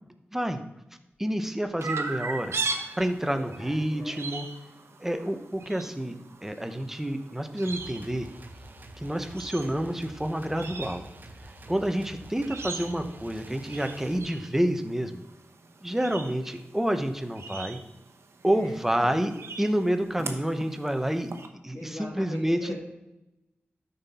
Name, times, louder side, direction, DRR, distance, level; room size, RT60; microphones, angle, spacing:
voice 1, 1.2-2.6 3.0-4.5 5.0-8.3 9.0-11.0 11.7-15.2 15.8-17.8 18.4-19.3 19.6-21.3 21.6-22.7, right 1 dB, 10° right, 8 dB, 0.8 m, -28 dB
Chirp tweet, 1.8-21.5, right 4 dB, 85° right, 1.0 m, -40 dB
voice 2, 3.2-4.2 18.4-18.7 19.2-19.3 21.7-22.7, left 1 dB, 80° left, -7 dB, 2.5 m, -42 dB
sound 1, 7.6-14.2, right 1 dB, 45° right, 0.8 m, -47 dB
13.0 x 5.4 x 4.2 m, 0.95 s
wide cardioid pair, 120°, 4 cm